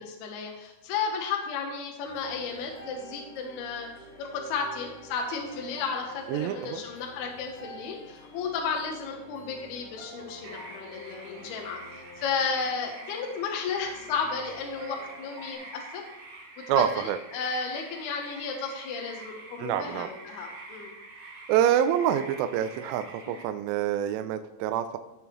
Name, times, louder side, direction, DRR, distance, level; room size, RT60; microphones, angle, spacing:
voice 1, 0.0-3.9 4.2-16.0 16.8-16.9 17.3-20.9, left 5 dB, 75° left, 1 dB, 2.4 m, -33 dB
sound 1, 2.0-15.5, equal, 45° left, 2.3 m, -48 dB
voice 2, 6.3-6.8 16.7-17.2 19.6-20.1 21.5-25.0, right 10 dB, 85° right, 9 dB, 3.0 m, -26 dB
sound 2, 10.4-23.4, right 2 dB, 65° right, 4.2 m, -46 dB
15.5 x 7.0 x 3.0 m, 1.1 s
omnidirectional pair, 5.8 m